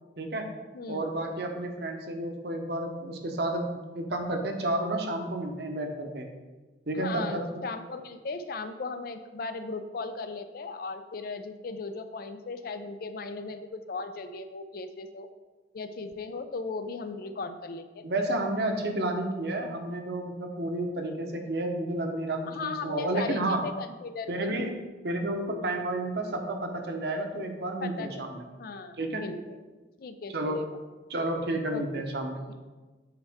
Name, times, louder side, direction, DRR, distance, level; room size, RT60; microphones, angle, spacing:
voice 1, 0.2-0.5 0.9-3.7 3.9-6.3 6.9-7.6 18.0-23.7 24.3-28.5 29.0-29.2 30.3-30.8 31.1-32.5, right 1 dB, 60° right, 3 dB, 0.9 m, -31 dB
voice 2, 0.7-1.1 7.0-15.3 15.7-18.1 22.5-24.7 27.8-28.3 28.6-29.6 30.0-30.7 31.7-32.0 32.5-32.6, left 3 dB, 50° left, 9 dB, 0.4 m, -37 dB
7.9 x 4.5 x 3.5 m, 1.3 s
head